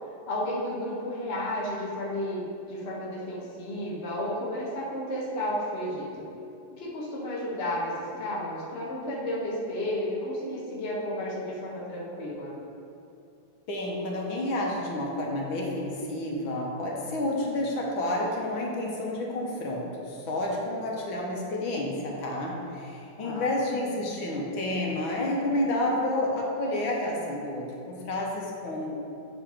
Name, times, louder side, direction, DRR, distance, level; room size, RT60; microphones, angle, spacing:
voice 1, 0.3-6.3 6.7-12.5 23.2-23.5, left 1 dB, 35° left, -5 dB, 1.2 m, -32 dB
voice 2, 13.7-29.0, left 1 dB, 90° left, -2 dB, 1.8 m, -30 dB
7.7 x 3.9 x 5.0 m, 2.6 s
omnidirectional pair, 2.1 m